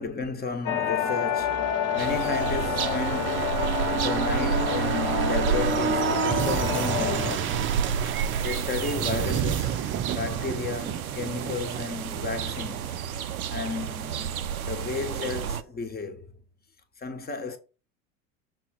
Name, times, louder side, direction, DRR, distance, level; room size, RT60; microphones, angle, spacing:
voice 1, 0.0-3.6 3.9-7.6 8.0-8.2 8.4-9.8 10.1-13.0 13.5-16.3 17.0-17.6, left 4 dB, 20° left, 1.2 m, -33 dB
sound 1, 0.7-7.4, left 8 dB, 50° left, 0.9 m, -29 dB
sound 2, 1.3-14.8 15.1-15.2, right 9 dB, 30° right, 0.7 m, -31 dB
sound 3, 2.0-15.6, right 7 dB, 85° right, 0.6 m, -31 dB
6.2 x 3.7 x 4.5 m
figure-of-eight pair, 75°, 42 cm